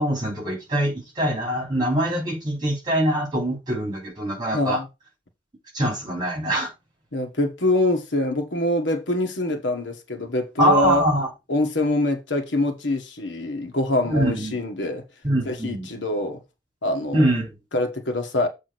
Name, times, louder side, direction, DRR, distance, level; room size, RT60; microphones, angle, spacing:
voice 1, 0.0-4.8 5.7-6.7 10.6-11.3 14.1-14.6 15.2-15.9 17.1-17.5, right 1 dB, 25° right, 3.3 m, -23 dB
voice 2, 4.5-4.8 7.1-11.0 11.5-15.0 15.4-16.4 16.8-17.3 17.7-18.5, left 1 dB, 85° left, 1.6 m, -24 dB
7.7 x 3.7 x 6.1 m
head